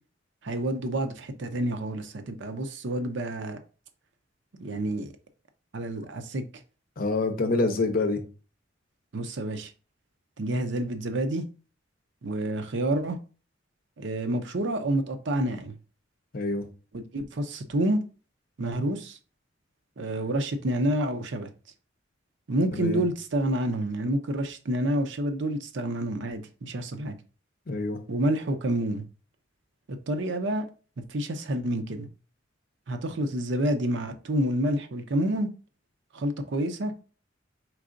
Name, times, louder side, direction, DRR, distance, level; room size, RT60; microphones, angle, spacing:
voice 1, 0.4-3.6 4.6-5.1 5.7-6.4 9.1-9.7 10.4-11.4 12.2-13.2 14.0-15.7 16.9-18.0 18.6-19.2 20.0-21.5 22.5-27.2 28.1-29.1 29.9-30.7 31.1-32.1 32.9-35.5 36.1-36.9, right 1 dB, 65° right, 0.6 m, -28 dB
voice 2, 7.0-8.2 16.3-16.7 22.7-23.0 27.7-28.0, left 3 dB, 50° left, 0.7 m, -26 dB
4.6 x 3.7 x 2.5 m
head